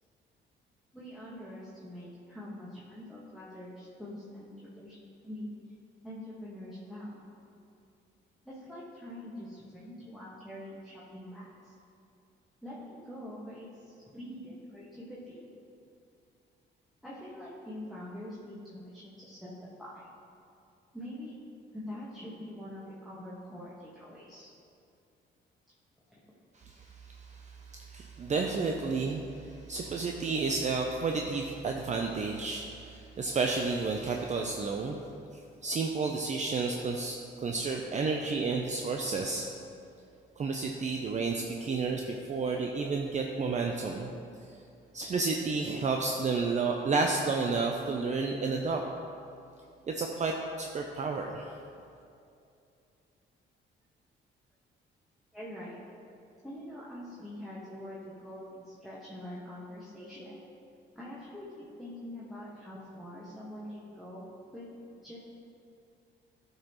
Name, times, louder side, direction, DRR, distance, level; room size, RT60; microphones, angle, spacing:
voice 1, 0.9-5.0 5.2-5.5 6.0-7.2 8.4-11.7 12.6-15.5 17.0-20.1 20.9-21.4 21.7-24.5 26.1-26.2 55.3-55.8 56.4-60.4 60.9-65.2, left 1 dB, ahead, -9 dB, 1.5 m, -44 dB
voice 2, 26.6-35.0 35.6-39.5 40.4-44.1 44.9-48.8 49.9-51.5, right 4 dB, 35° right, 2 dB, 0.5 m, -31 dB
11.5 x 5.4 x 3.0 m, 2.6 s
cardioid pair, 90°, 20 cm